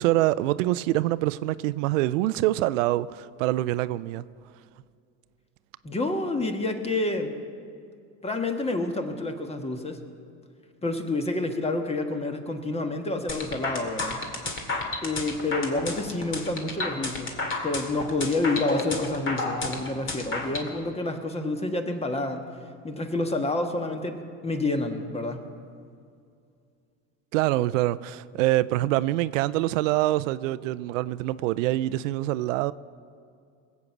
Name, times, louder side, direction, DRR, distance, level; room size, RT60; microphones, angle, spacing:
voice 1, 0.0-4.2 27.3-32.7, right 16 dB, 85° right, 0.5 m, -25 dB
voice 2, 5.8-7.3 8.2-10.0 10.8-14.2 15.0-17.4 17.6-22.4 22.8-25.4, left 2 dB, 15° left, 1.4 m, -28 dB
sound 1, 13.3-20.7, left 2 dB, 35° left, 2.1 m, -31 dB
20.0 x 8.2 x 6.0 m
supercardioid pair, 100°, 37 cm